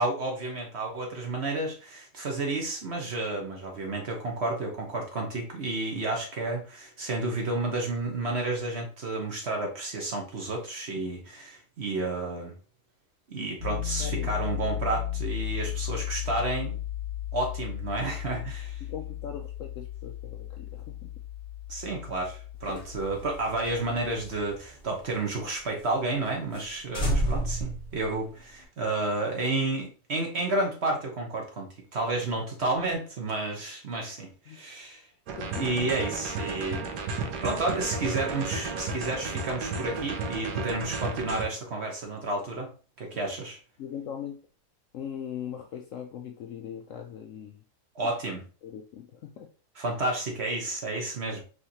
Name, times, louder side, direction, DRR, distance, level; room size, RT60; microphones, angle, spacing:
voice 1, 0.0-12.5 13.3-16.8 17.3-18.8 21.7-35.0 35.6-36.8 37.4-42.7 43.0-43.6 47.9-48.4 49.8-51.4, right 2 dB, 45° right, 1 dB, 1.1 m, -31 dB
Piano, 13.6-24.4, left 12 dB, 20° right, 1.2 m, -35 dB
voice 2, 14.0-14.3 18.8-21.1 22.7-22.8 34.5-34.6 35.4-35.7 43.8-44.4 44.9-47.6 48.0-48.1 48.6-49.5, left 8 dB, 70° left, 4 dB, 0.7 m, -40 dB
sound 1, 22.6-25.4 25.8-25.9 26.2-26.3 26.5-26.7 26.9-28.6, equal, 25° left, 1.1 m, -32 dB
sound 2, 35.3-41.4, right 3 dB, 80° right, 1.3 m, -33 dB
4.9 x 3.2 x 2.8 m, 0.37 s
omnidirectional pair, 1.8 m